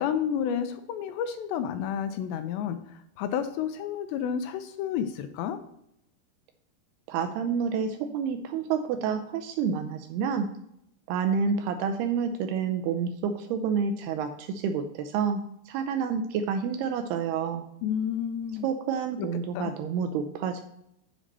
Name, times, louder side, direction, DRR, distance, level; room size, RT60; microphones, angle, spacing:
voice 1, 0.0-2.8 3.2-5.6 17.8-18.7 19.2-19.3 19.6-19.7, left 8 dB, 85° left, 9 dB, 2.6 m, -30 dB
voice 2, 7.1-10.5 11.1-15.4 15.7-17.6 18.6-20.6, right 6 dB, 80° right, 7 dB, 2.3 m, -29 dB
7.3 x 5.0 x 6.6 m, 0.76 s
omnidirectional pair, 5.1 m